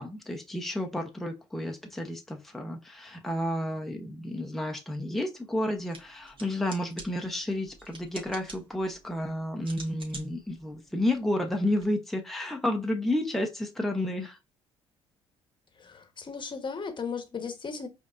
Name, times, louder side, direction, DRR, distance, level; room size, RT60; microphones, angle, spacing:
voice 1, 0.0-14.4, left 1 dB, ahead, 0.9 m, -31 dB
sound 1, 5.7-11.8, right 3 dB, 40° right, 1.7 m, -49 dB
voice 2, 15.8-17.9, left 5 dB, 35° left, 1.2 m, -36 dB
4.9 x 2.7 x 2.5 m
hypercardioid pair, 55°, 14 cm